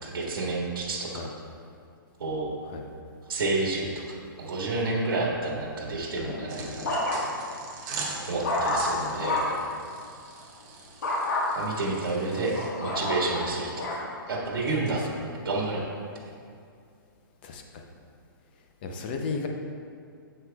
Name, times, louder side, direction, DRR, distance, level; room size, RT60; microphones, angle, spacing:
voice 1, 0.0-1.3 2.2-2.5 3.3-7.3 8.3-9.6 11.5-13.9 14.3-15.8, right 2 dB, 75° right, -2 dB, 1.7 m, -30 dB
sound 1, 6.2-7.5 8.0-9.7 11.0-11.5 12.1-14.1 14.7-15.1, left 2 dB, 55° left, 1.5 m, -29 dB
sound 2, 6.5-12.7, right 4 dB, 20° right, 0.7 m, -41 dB
voice 2, 18.8-19.5, left 4 dB, 25° left, 3 dB, 0.6 m, -34 dB
9.4 x 7.7 x 2.3 m, 2.4 s
hypercardioid pair, 175°, 12 cm